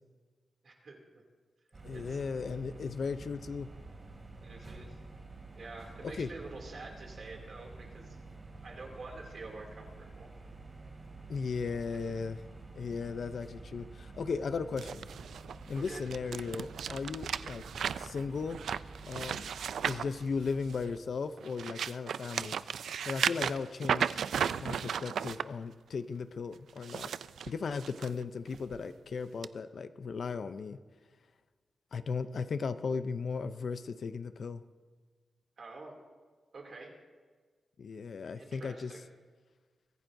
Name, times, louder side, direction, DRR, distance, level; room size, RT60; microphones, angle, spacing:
voice 1, 0.6-1.2 1.9-2.2 4.4-5.0 5.5-8.2 8.6-10.3 15.7-16.0 35.6-36.0 36.5-36.9 38.4-39.0, right 3 dB, 45° right, 1 dB, 2.6 m, -47 dB
sound 1, 1.7-21.0, right 3 dB, 30° right, 2.6 m, -49 dB
voice 2, 1.8-3.7 6.0-6.3 11.3-12.4 12.8-15.1 15.7-17.6 18.0-18.6 19.1-19.5 19.8-22.6 23.0-24.2 24.6-27.1 27.5-30.8 31.9-34.6 37.8-38.9, left 5 dB, 50° left, 11 dB, 0.5 m, -36 dB
sound 2, 14.8-20.9 21.4-25.4 26.7-28.1 28.5-28.8 29.4-29.5, right 8 dB, 80° right, 0.3 m, -35 dB
23.5 x 15.5 x 2.6 m, 1.5 s
wide cardioid pair, 155°, 0 cm